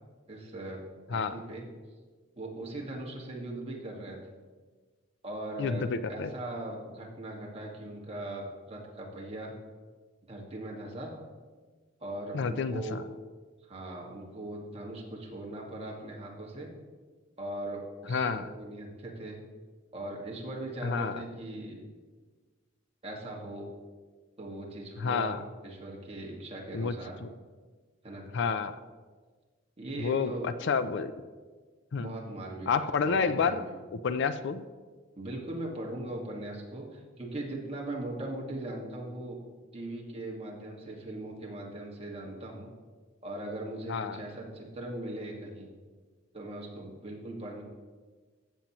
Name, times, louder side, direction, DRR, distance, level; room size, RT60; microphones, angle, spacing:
voice 1, 0.3-0.8 1.1-1.6 2.4-4.2 5.2-9.5 10.3-11.1 12.0-13.0 13.7-16.7 17.4-19.4 19.9-21.8 23.0-23.7 24.4-25.4 25.6-27.2 28.0-28.3 29.8-30.5 32.0-32.7 33.0-33.7 35.2-39.4 39.7-42.7 43.2-45.7 46.3-47.6, right 1 dB, 30° right, -2 dB, 1.8 m, -39 dB
voice 2, 5.6-6.3 12.3-13.0 18.1-18.5 20.8-21.2 25.0-25.4 26.7-26.9 27.2-27.3 28.3-28.8 30.0-31.1 31.9-32.1 32.7-33.6 34.0-34.7 43.9-44.2, left 5 dB, 65° left, 12 dB, 0.4 m, -29 dB
15.0 x 7.1 x 3.0 m, 1.4 s
head